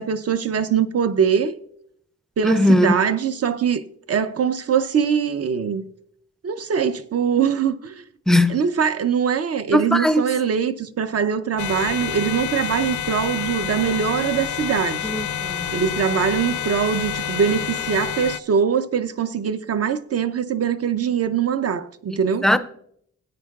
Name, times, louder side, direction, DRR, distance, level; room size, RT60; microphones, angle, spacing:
voice 1, 0.0-1.5 2.4-3.8 4.1-5.8 6.4-8.0 8.5-15.1 15.7-22.5, right 7 dB, 55° right, 0.6 m, -22 dB
voice 2, 2.4-2.9 8.3-8.6 9.7-10.2 15.0-15.7 22.4-22.6, left 1 dB, ahead, 0.4 m, -18 dB
sound 1, 11.6-18.4, left 9 dB, 75° left, 0.5 m, -28 dB
15.0 x 9.2 x 2.3 m
wide cardioid pair, 170°, 29 cm